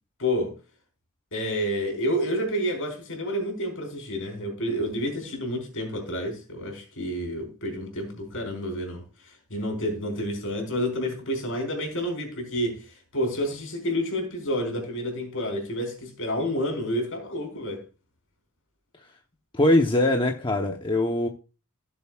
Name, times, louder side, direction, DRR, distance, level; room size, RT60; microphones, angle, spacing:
voice 1, 0.2-0.6 1.3-17.8, equal, 60° left, 4.2 m, -29 dB
voice 2, 19.5-21.3, left 1 dB, 25° left, 0.9 m, -22 dB
16.5 x 7.1 x 2.4 m
head